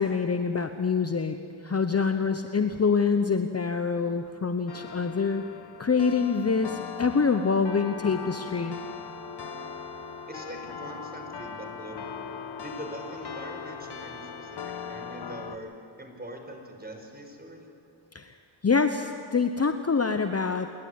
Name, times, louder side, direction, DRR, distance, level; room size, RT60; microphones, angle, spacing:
voice 1, 0.0-1.4 1.6-5.5 5.8-8.8 18.1-18.4 18.6-20.7, left 5 dB, 30° left, 8 dB, 1.1 m, -25 dB
sound 1, 4.7-15.6, left 5 dB, 50° left, 1.5 m, -39 dB
voice 2, 10.3-12.0 12.6-15.7 16.0-17.6, right 1 dB, 20° right, 2 dB, 5.6 m, -42 dB
28.5 x 11.5 x 9.5 m, 2.4 s
supercardioid pair, 50°, 49 cm